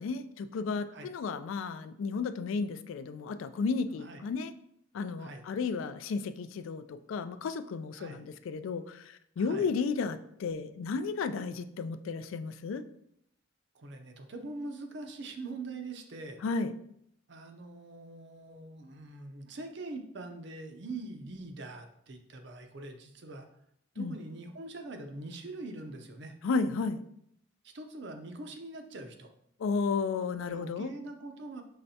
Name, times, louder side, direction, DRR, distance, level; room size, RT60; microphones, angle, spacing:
voice 1, 0.0-4.5 4.9-12.8 16.4-16.7 24.0-24.2 26.4-27.0 29.6-30.9, left 4 dB, 80° left, 11 dB, 0.3 m, -33 dB
voice 2, 9.4-9.7 13.7-16.4 17.3-23.5 24.0-26.4 27.6-29.3 30.5-31.6, right 2 dB, 60° right, 5 dB, 0.6 m, -43 dB
5.6 x 3.2 x 2.7 m, 0.72 s
head